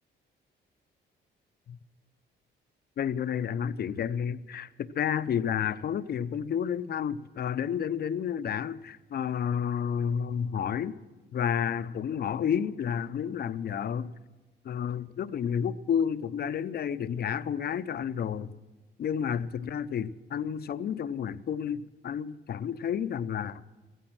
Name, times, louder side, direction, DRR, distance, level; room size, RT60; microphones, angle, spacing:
voice 1, 3.0-11.0 11.3-14.1 14.6-18.5 19.0-23.6, left 8 dB, 50° left, 0.7 m, -31 dB
15.0 x 15.0 x 6.1 m
cardioid pair, 90°, 20 cm